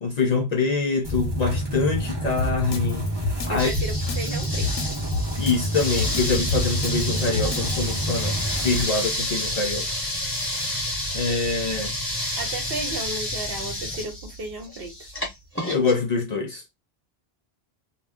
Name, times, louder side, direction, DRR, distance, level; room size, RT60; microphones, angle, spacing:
voice 1, 0.0-3.2 3.5-3.7 5.4-9.9 11.1-11.9 15.7-16.6, left 4 dB, 55° left, 0.5 m, -25 dB
sound 1, 1.0-8.8, right 1 dB, 30° right, 0.7 m, -29 dB
Drum kit, 2.4-7.7, left 4 dB, 90° left, 0.8 m, -28 dB
voice 2, 3.5-4.7 12.4-14.9, right 2 dB, 70° right, 1.0 m, -34 dB
sound 2, 3.6-15.9, left 1 dB, 15° left, 0.9 m, -30 dB
2.2 x 2.0 x 3.4 m
omnidirectional pair, 1.0 m